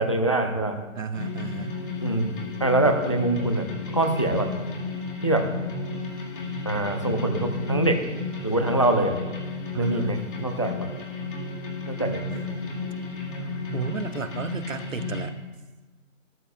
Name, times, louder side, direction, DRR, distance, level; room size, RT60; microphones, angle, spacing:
voice 1, 0.0-0.8 2.0-2.3 2.6-4.5 5.2-5.5 6.6-8.0 8.4-9.2 9.8-10.9 11.9-12.2, right 2 dB, 25° left, 5 dB, 0.5 m, -24 dB
voice 2, 0.9-1.8 9.7-10.2 13.4-15.3, right 5 dB, 75° right, 11 dB, 0.8 m, -33 dB
sound 1, 1.1-15.3, left 3 dB, 40° left, 2.0 m, -33 dB
13.0 x 12.0 x 2.4 m, 1.2 s
figure-of-eight pair, 150°, 39 cm